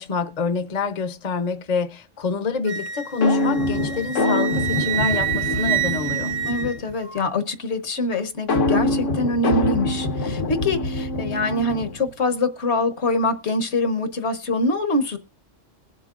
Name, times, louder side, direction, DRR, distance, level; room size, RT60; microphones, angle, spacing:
voice 1, 0.0-6.3, left 5 dB, 40° left, 0.8 m, -26 dB
Wind instrument woodwind instrument, 2.7-7.2, right 11 dB, 65° right, 1.2 m, -27 dB
sound 1, 3.2-6.9 8.5-12.1, left 2 dB, 80° left, 1.5 m, -24 dB
voice 2, 6.5-15.2, left 2 dB, 65° left, 1.3 m, -24 dB
21.0 x 7.5 x 2.4 m
omnidirectional pair, 1.3 m